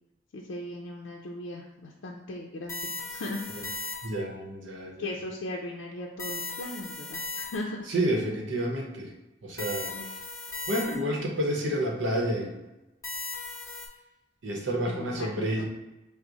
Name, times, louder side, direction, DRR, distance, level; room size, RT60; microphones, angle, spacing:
voice 1, 0.3-3.9 5.0-7.9 9.9-10.1 14.9-15.6, left 1 dB, 75° left, -1 dB, 0.5 m, -38 dB
sound 1, 2.7-4.3 6.2-7.9 9.6-11.2 13.0-13.9, left 3 dB, 15° left, 0.8 m, -37 dB
voice 2, 4.0-5.0 7.9-9.1 9.4-9.9 10.7-12.6 14.4-15.6, right 1 dB, 80° right, 0 dB, 0.8 m, -29 dB
4.7 x 2.1 x 3.9 m, 1.0 s
head